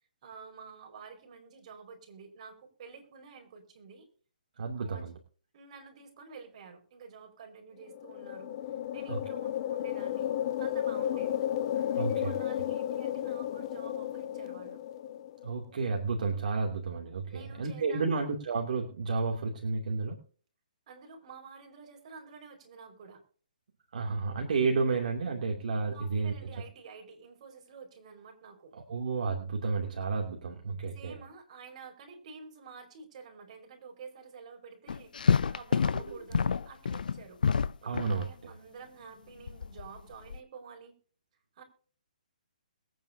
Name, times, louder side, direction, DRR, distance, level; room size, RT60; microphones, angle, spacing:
voice 1, 0.2-4.1 4.8-5.1 5.5-8.6 8.9-11.4 11.9-14.8 17.3-18.3 20.9-23.2 25.9-28.7 30.9-35.1 35.5-37.4 37.8-40.9 41.5-41.6, right 5 dB, 45° right, 3 dB, 5.2 m, -50 dB
voice 2, 4.6-5.1 9.1-9.2 11.8-12.3 15.4-20.2 23.9-26.3 28.7-31.2 35.9-36.4 37.8-38.5, right 4 dB, 60° right, 1 dB, 2.6 m, -32 dB
sound 1, 7.8-15.5, left 11 dB, 40° left, 1.0 m, -33 dB
sound 2, 34.9-38.3 39.5-40.4, left 6 dB, 70° left, 0.5 m, -28 dB
22.0 x 9.3 x 2.8 m, 0.43 s
hypercardioid pair, 140°, 5 cm